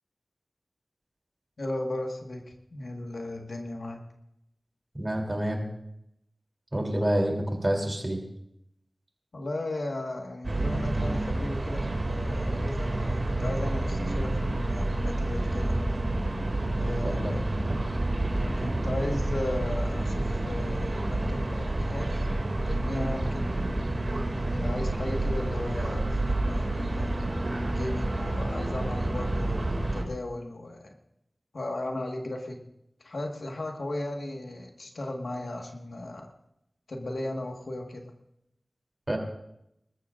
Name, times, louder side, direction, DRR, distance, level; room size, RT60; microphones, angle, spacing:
voice 1, 1.6-4.0 9.3-15.8 16.8-17.5 18.6-22.3 22.6-23.5 24.5-27.3 27.6-30.9 31.5-32.6 33.0-36.3 36.9-38.1, left 1 dB, 85° left, 2 dB, 1.7 m, -36 dB
voice 2, 4.9-5.7 6.7-8.2 17.0-17.3 39.1-39.2, right 1 dB, 30° right, 1 dB, 3.3 m, -27 dB
sound 1, 10.4-30.0, right 1 dB, 50° right, 2.5 m, -29 dB
25.5 x 14.0 x 2.6 m, 0.81 s
wide cardioid pair, 60°, 0 cm